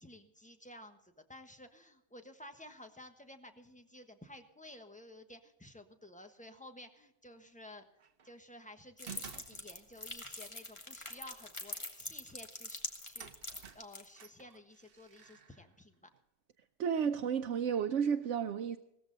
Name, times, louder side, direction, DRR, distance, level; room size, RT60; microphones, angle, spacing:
voice 1, 0.0-7.8 8.2-13.3 13.7-16.1, left 1 dB, 5° left, 1.2 m, -53 dB
sound 1, 8.0-8.4 9.1-10.2 12.6-12.7 13.2-16.2, right 8 dB, 55° right, 1.0 m, -53 dB
sound 2, 9.0-14.1, left 1 dB, 25° left, 1.7 m, -43 dB
voice 2, 16.8-18.8, right 7 dB, 85° right, 1.0 m, -32 dB
17.5 x 14.0 x 4.0 m
omnidirectional pair, 1.2 m